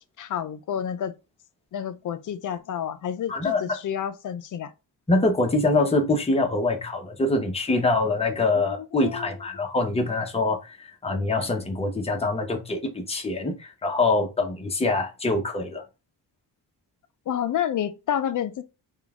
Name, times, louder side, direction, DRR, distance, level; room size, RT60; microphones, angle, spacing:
voice 1, 0.2-1.1 1.7-4.7 8.5-9.3 17.3-18.6, left 9 dB, 45° left, 0.4 m, -29 dB
voice 2, 3.3-3.6 5.1-15.8, left 2 dB, 15° left, 0.7 m, -24 dB
3.7 x 2.3 x 3.5 m
cardioid pair, 115°, 43 cm